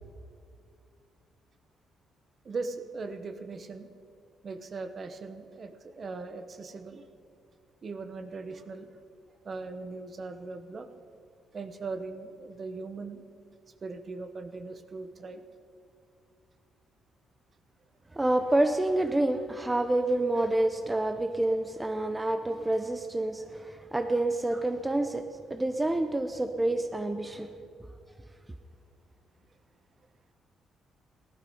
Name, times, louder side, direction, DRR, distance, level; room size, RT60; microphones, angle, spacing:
voice 1, 2.4-3.9 4.4-7.0 7.8-8.9 9.4-10.9 11.5-13.2 13.8-15.4, right 3 dB, 45° right, 9 dB, 1.1 m, -39 dB
voice 2, 18.1-25.2 25.5-27.5, right 1 dB, 15° right, 7 dB, 0.7 m, -28 dB
16.0 x 11.5 x 5.5 m, 2.4 s
cardioid pair, 90°, 0 cm